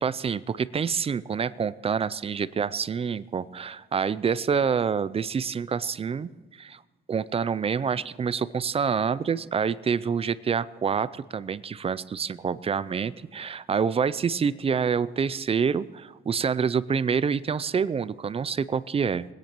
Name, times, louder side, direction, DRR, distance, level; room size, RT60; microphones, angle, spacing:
voice 1, 0.0-6.8 7.1-19.3, right 6 dB, 30° right, 18 dB, 0.4 m, -27 dB
20.5 x 10.0 x 3.0 m, 1.3 s
cardioid pair, 90°, 20 cm